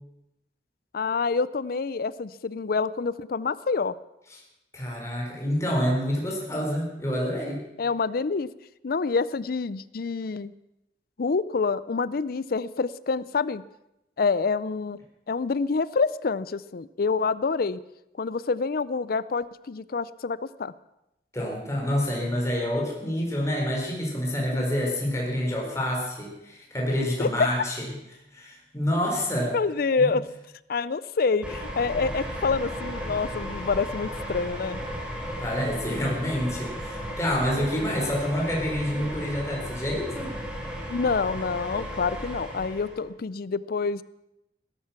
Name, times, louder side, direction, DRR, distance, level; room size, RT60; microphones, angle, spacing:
voice 1, 0.9-3.9 7.8-8.5 8.8-10.5 11.2-13.6 14.2-15.0 15.3-17.8 18.2-20.7 24.5-24.6 27.2-27.5 29.5-30.2 30.7-34.8 37.5-37.7 40.9-44.0, left 4 dB, 55° left, 18 dB, 0.5 m, -27 dB
voice 2, 4.7-7.6 21.3-27.9 28.3-29.6 30.0-30.2 35.4-40.3, equal, 15° left, -2 dB, 4.4 m, -28 dB
sound 1, 31.4-43.0, equal, 5° right, 3.2 m, -35 dB
17.0 x 13.5 x 5.8 m, 0.88 s
head